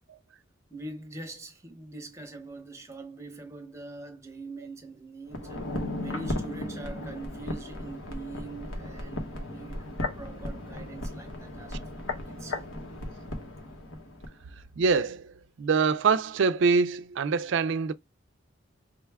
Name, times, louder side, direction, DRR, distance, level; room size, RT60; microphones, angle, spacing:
voice 1, 0.7-9.9 10.1-12.7, right 2 dB, 15° right, 0.7 m, -43 dB
sound 1, 5.3-14.3 14.6-14.7, left 1 dB, 85° left, 1.1 m, -36 dB
voice 2, 14.8-17.9, right 5 dB, 65° right, 0.4 m, -25 dB
4.9 x 2.2 x 3.4 m
head